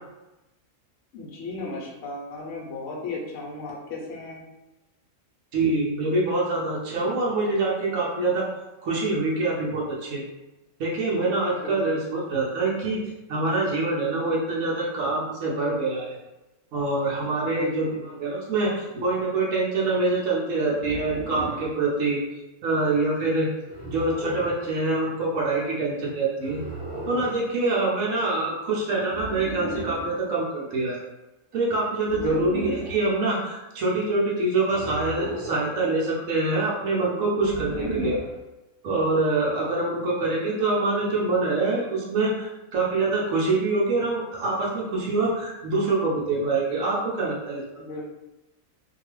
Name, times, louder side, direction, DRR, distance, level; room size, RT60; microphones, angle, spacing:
voice 1, 1.1-4.4 11.6-12.0 17.4-18.0 32.1-32.7 37.6-38.2 47.7-48.0, left 2 dB, 65° left, -3 dB, 0.9 m, -36 dB
voice 2, 5.5-8.4 8.8-10.2 10.8-13.0 13.3-16.1 16.7-17.9 18.2-22.2 22.6-23.5 23.8-26.6 27.1-31.0 31.5-38.1 38.8-47.6, right 2 dB, 80° right, -5 dB, 1.1 m, -25 dB
sound 1, 20.8-21.7 23.7-24.7 26.4-27.4 29.1-30.1 32.0-33.0 34.7-35.7 37.3-38.4, right 1 dB, 15° right, 1.0 m, -35 dB
2.8 x 2.3 x 3.0 m, 1.0 s
omnidirectional pair, 1.4 m